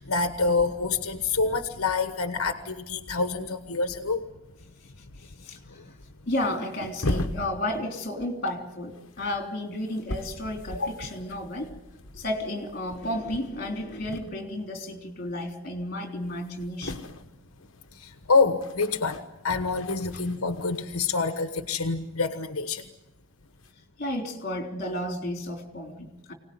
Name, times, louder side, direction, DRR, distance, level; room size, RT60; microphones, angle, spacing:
voice 1, 0.0-4.2 10.7-10.9 17.9-22.8, left 4 dB, 80° left, 8 dB, 1.3 m, -27 dB
sound 1, 4.6-4.7 5.0-5.1 5.8-6.0 6.3-8.1 8.5-14.7 15.0-15.4 15.7-15.8 16.0-22.3 23.2-23.7, left 1 dB, 60° left, 1.6 m, -39 dB
voice 2, 5.2-5.8 6.3-11.7 12.1-17.1 24.0-26.3, left 1 dB, 45° left, 4 dB, 3.4 m, -32 dB
25.0 x 18.5 x 9.6 m, 0.99 s
head